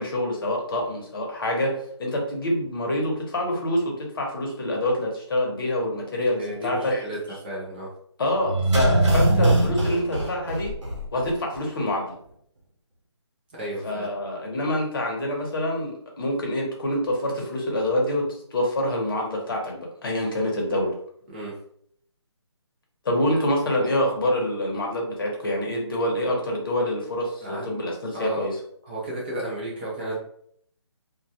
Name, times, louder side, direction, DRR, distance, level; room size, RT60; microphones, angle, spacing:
voice 1, 0.0-1.7 2.0-7.0 8.2-10.7 11.1-12.1 13.8-18.3 18.5-20.9 23.0-28.5, left 1 dB, 50° left, 0 dB, 0.8 m, -26 dB
voice 2, 6.4-7.2 7.4-7.9 13.5-14.1 21.3-21.5 27.4-27.8 28.1-28.5 28.8-30.2, right 1 dB, 20° right, -4 dB, 0.4 m, -33 dB
sound 1, 8.4-11.3 11.5-11.6, right 2 dB, 75° right, 0.9 m, -22 dB
2.2 x 2.1 x 2.7 m, 0.67 s
figure-of-eight pair, 155°, 15 cm